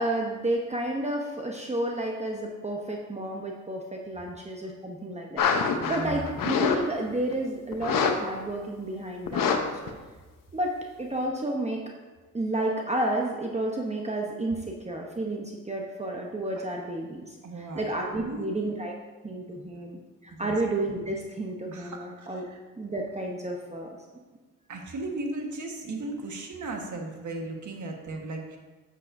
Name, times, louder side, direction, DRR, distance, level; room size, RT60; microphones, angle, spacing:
voice 1, 0.0-9.9 10.5-11.8 12.3-18.9 19.2-22.5 22.8-24.0, right 1 dB, 20° right, 0 dB, 0.9 m, -31 dB
sound 1, 5.4-6.8 7.1-7.3 7.7-8.1 8.5-8.6 9.3-9.6 9.9-10.0, left 6 dB, 80° left, 0.9 m, -25 dB
voice 2, 5.8-6.4 17.4-17.9 18.1-18.5 19.5-19.6 20.3-20.5 21.7-22.6 24.7-28.6, right 2 dB, 65° right, 2 dB, 1.5 m, -36 dB
10.5 x 7.5 x 2.6 m, 1.3 s
cardioid pair, 90°, 33 cm